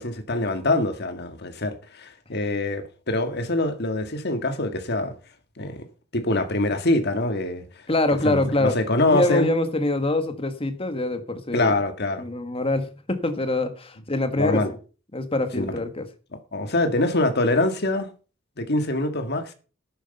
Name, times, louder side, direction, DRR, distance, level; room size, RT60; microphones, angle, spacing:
voice 1, 0.0-5.1 5.6-5.9 6.1-7.7 8.2-9.5 11.5-12.3 14.4-14.7 15.6-15.7 16.5-18.1 18.6-19.5, left 2 dB, 55° left, 1.8 m, -24 dB
voice 2, 7.9-8.8 9.1-11.7 12.2-14.6 15.1-16.1, left 2 dB, 30° left, 1.5 m, -24 dB
11.5 x 9.5 x 5.5 m
head